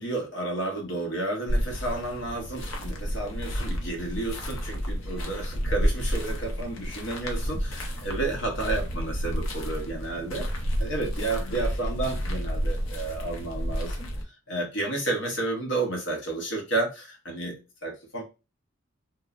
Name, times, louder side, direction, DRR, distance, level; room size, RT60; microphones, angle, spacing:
voice 1, 0.0-10.5 10.8-17.6 17.8-18.2, right 2 dB, 65° left, 1 dB, 0.9 m, -31 dB
sound 1, 1.5-14.2, equal, 85° left, 0.6 m, -30 dB
3.0 x 2.0 x 2.4 m, 0.30 s
head